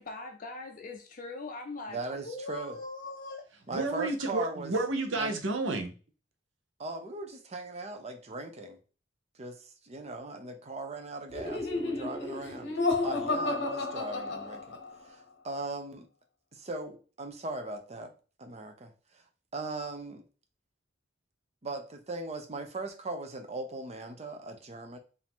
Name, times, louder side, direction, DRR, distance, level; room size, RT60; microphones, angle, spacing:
voice 1, 0.0-3.5, left 3 dB, 45° left, 0.5 m, -41 dB
voice 2, 1.9-2.8 3.7-4.7 5.2-5.3 6.8-8.8 9.4-12.8 13.0-16.1 16.5-18.1 18.4-19.2 19.5-20.3 21.6-25.0, right 2 dB, 35° right, 0.7 m, -39 dB
voice 3, 3.7-5.9, right 2 dB, 75° right, 0.8 m, -31 dB
Laughter, 11.3-15.0, left 3 dB, 65° left, 0.8 m, -32 dB
4.8 x 2.7 x 3.6 m
head